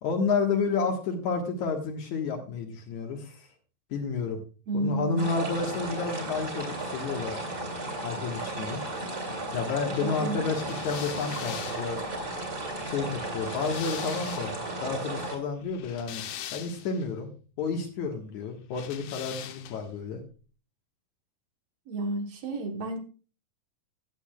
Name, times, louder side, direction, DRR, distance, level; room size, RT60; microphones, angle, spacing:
voice 1, 0.0-3.5 3.9-4.4 4.7-7.4 8.0-8.8 9.5-12.0 12.8-14.5 14.8-16.2 16.5-17.3 17.6-20.2, left 5 dB, 60° left, 3 dB, 2.6 m, -30 dB
voice 2, 4.7-5.4 10.0-10.5 21.9-23.0, right 2 dB, 60° right, 5 dB, 1.9 m, -31 dB
sound 1, 5.2-15.4, right 2 dB, 30° right, 2.7 m, -35 dB
sound 2, 10.6-14.7 15.6-17.0 18.7-20.0, left 11 dB, 90° left, 1.5 m, -42 dB
17.0 x 8.2 x 2.3 m, 0.36 s
omnidirectional pair, 4.1 m